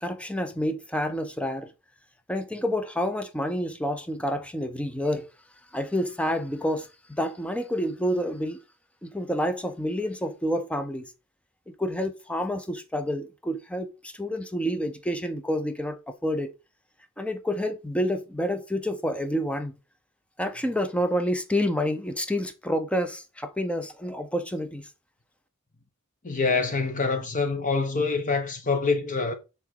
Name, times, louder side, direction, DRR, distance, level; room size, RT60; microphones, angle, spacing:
voice 1, 0.0-1.7 2.3-5.2 5.7-8.6 9.0-11.1 11.7-16.5 17.2-19.7 20.4-24.9, equal, 5° left, 0.7 m, -28 dB
voice 2, 26.2-29.3, left 4 dB, 40° left, 1.2 m, -25 dB
6.1 x 3.9 x 4.6 m
head